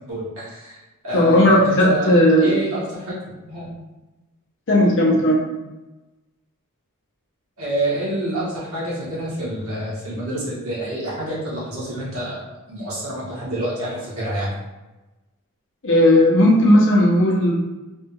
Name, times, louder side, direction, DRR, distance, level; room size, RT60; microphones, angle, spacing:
voice 1, 0.1-0.8 1.0-3.2 3.5-3.7 7.6-12.4 12.7-14.5, equal, 70° right, -8 dB, 1.4 m, -27 dB
voice 2, 1.1-2.5 4.7-5.4 15.8-17.5, left 1 dB, 60° left, -2 dB, 0.8 m, -15 dB
3.4 x 2.4 x 2.9 m, 1.1 s
head